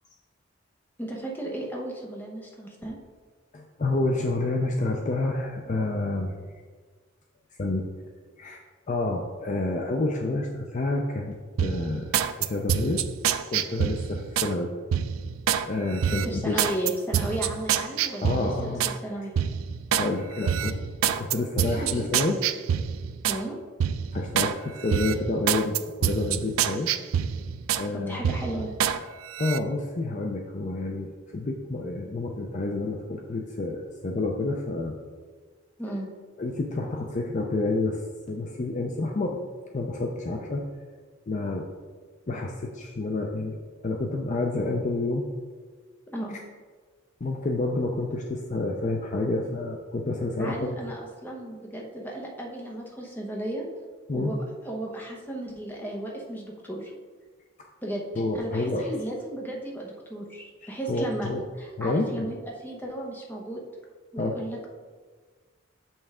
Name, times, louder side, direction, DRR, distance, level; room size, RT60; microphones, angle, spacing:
voice 1, 1.0-3.0 16.1-19.3 21.6-21.9 23.3-23.6 27.9-28.7 35.8-36.1 46.1-46.4 50.4-53.7 54.1-54.4 54.6-56.9 57.8-58.0 58.3-61.3 61.6-63.6 64.1-64.7, right 1 dB, 10° left, -1 dB, 0.9 m, -34 dB
voice 2, 3.5-6.4 7.6-7.9 8.4-13.1 13.5-14.7 15.6-16.6 18.2-18.8 19.9-22.4 24.1-26.9 27.7-28.2 29.4-34.9 36.4-38.0 38.3-39.4 39.7-40.6 41.3-41.7 42.3-43.6 43.8-45.3 47.2-50.8 54.1-54.4 58.2-58.9 60.6-61.4 61.8-62.3 64.2-64.4, left 2 dB, 35° left, 2 dB, 0.5 m, -29 dB
sound 1, 11.6-14.5 14.9-15.6 16.0-19.0 19.4-20.1 20.4-23.4 23.8-24.5 24.9-27.9 28.2-29.0 29.3-29.6, right 9 dB, 80° right, 0.3 m, -27 dB
6.9 x 5.4 x 3.6 m, 1.5 s
head